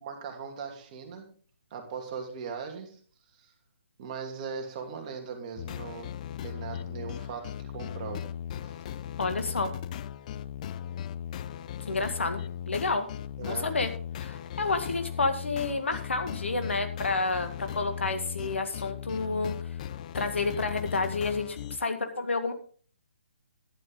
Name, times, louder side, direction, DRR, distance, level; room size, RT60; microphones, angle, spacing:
voice 1, 0.0-1.3 1.7-3.0 3.3-3.5 4.0-6.1 6.4-8.3 8.6-8.8 13.4-13.7, right 6 dB, 35° right, 4 dB, 2.8 m, -39 dB
sound 1, 5.6-21.8, left 9 dB, 35° left, 0.6 m, -38 dB
voice 2, 9.2-9.7 11.9-13.1 13.4-13.9 14.2-19.8 20.1-22.5, left 3 dB, 70° left, 7 dB, 2.0 m, -30 dB
11.5 x 10.5 x 3.9 m, 0.43 s
figure-of-eight pair, 140°, 7 cm